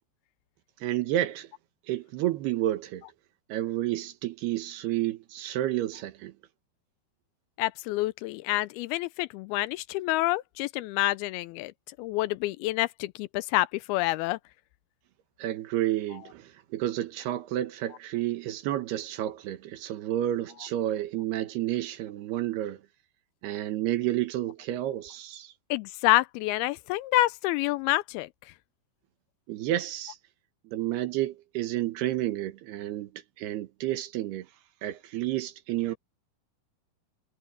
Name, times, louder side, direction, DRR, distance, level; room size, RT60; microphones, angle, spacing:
voice 1, 0.8-1.5 1.9-3.1 3.5-6.3 15.4-22.8 23.4-25.5 29.5-30.2 30.6-34.5 34.8-36.0, right 14 dB, 80° right, 3.3 m, -30 dB
voice 2, 7.6-11.7 12.0-14.4 25.7-28.3, left 18 dB, 80° left, 2.4 m, -27 dB
omnidirectional pair, 4.6 m